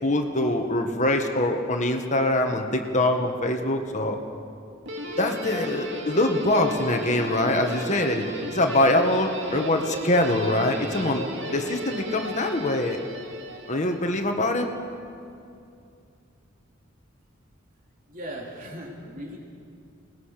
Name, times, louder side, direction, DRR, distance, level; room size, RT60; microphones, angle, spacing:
voice 1, 0.0-4.2 5.2-13.0 13.7-14.7, left 1 dB, 35° left, 4 dB, 1.7 m, -24 dB
Guitar, 4.9-14.2, right 1 dB, 60° right, 2.5 m, -35 dB
voice 2, 18.1-19.4, equal, 45° right, -1 dB, 3.6 m, -38 dB
29.0 x 19.5 x 6.7 m, 2.5 s
head